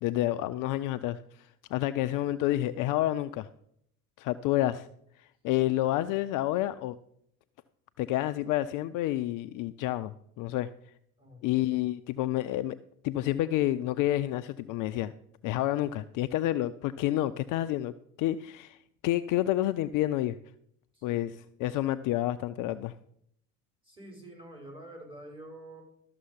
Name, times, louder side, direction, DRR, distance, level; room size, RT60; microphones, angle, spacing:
voice 1, 0.0-3.5 4.2-4.9 5.2-7.0 8.0-10.7 11.4-12.8 13.0-15.1 15.4-17.9 18.2-20.4 21.0-22.9, left 14 dB, 45° left, 13 dB, 0.5 m, -29 dB
voice 2, 11.2-11.8 20.9-21.3 23.8-25.8, right 1 dB, 10° right, -2 dB, 5.7 m, -48 dB
12.5 x 6.7 x 5.6 m, 0.73 s
hypercardioid pair, 65°, 45 cm